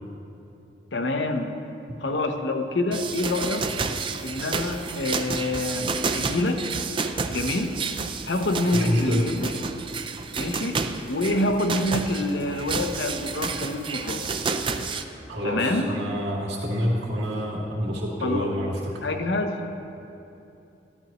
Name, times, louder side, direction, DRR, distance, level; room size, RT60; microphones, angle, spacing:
voice 1, 0.9-1.6 2.0-3.7 4.2-6.6 7.3-7.8 8.3-9.5 10.4-10.8 11.1-14.2 15.4-15.9 18.2-18.5 19.0-19.7, left 2 dB, 80° left, 5 dB, 0.8 m, -26 dB
sound 1, 2.9-15.0, right 4 dB, 30° right, 0.4 m, -30 dB
voice 2, 8.7-9.3 15.3-19.0, equal, 75° right, -4 dB, 2.2 m, -27 dB
14.0 x 12.0 x 3.0 m, 2.8 s
head